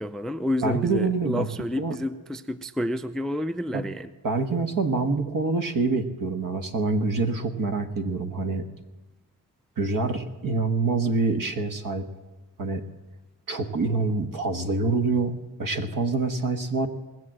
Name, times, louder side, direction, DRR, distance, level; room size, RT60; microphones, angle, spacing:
voice 1, 0.0-4.1, left 1 dB, ahead, 12 dB, 0.4 m, -29 dB
voice 2, 0.6-1.5 1.8-1.9 3.7-3.8 4.2-8.6 9.8-12.0 12.6-12.8 13.5-16.9, right 3 dB, 60° right, 6 dB, 1.4 m, -26 dB
20.0 x 7.7 x 7.7 m, 1.2 s
cardioid pair, 95°, 38 cm